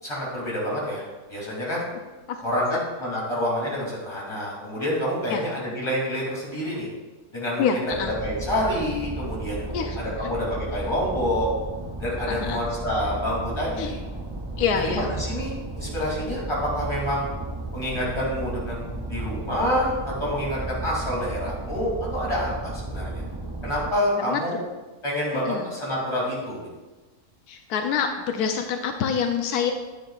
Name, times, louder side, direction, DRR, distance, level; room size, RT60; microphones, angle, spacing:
voice 1, 0.0-1.0 1.3-1.8 2.4-6.9 7.3-7.7 8.2-11.5 12.0-14.0 14.8-15.5 15.8-17.2 17.7-23.2 23.6-24.6 25.0-26.6, equal, 20° left, -5 dB, 2.8 m, -27 dB
voice 2, 7.6-8.1 9.7-10.0 12.3-12.6 13.8-13.9 14.6-15.1 24.3-24.4 25.4-25.7 27.5-29.7, left 7 dB, 85° left, 5 dB, 1.1 m, -26 dB
sound 1, 7.9-23.9, right 2 dB, 30° right, 0.5 m, -34 dB
9.9 x 9.7 x 2.4 m, 1.2 s
omnidirectional pair, 1.6 m